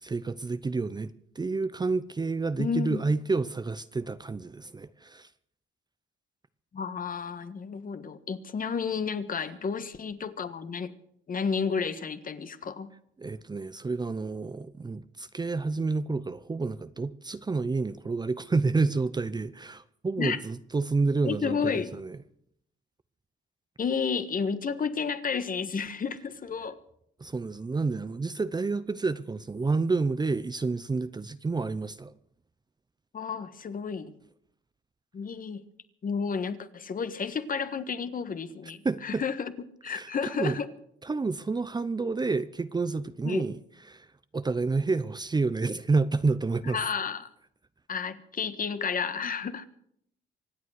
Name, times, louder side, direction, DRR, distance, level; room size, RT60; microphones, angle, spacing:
voice 1, 0.0-5.3 13.2-22.2 27.2-32.1 38.8-39.2 39.9-40.6 41.0-43.6 43.9-44.1 44.3-46.8, right 3 dB, 20° right, 0.6 m, -29 dB
voice 2, 2.6-3.0 6.7-10.9 11.3-12.9 20.2-20.4 21.2-21.9 23.8-26.8 33.1-34.1 35.1-35.6 36.0-39.5 39.8-40.7 43.2-43.4 46.7-47.3 47.9-49.7, left 6 dB, 45° left, 1.4 m, -31 dB
25.5 x 8.6 x 6.5 m
cardioid pair, 90°, 20 cm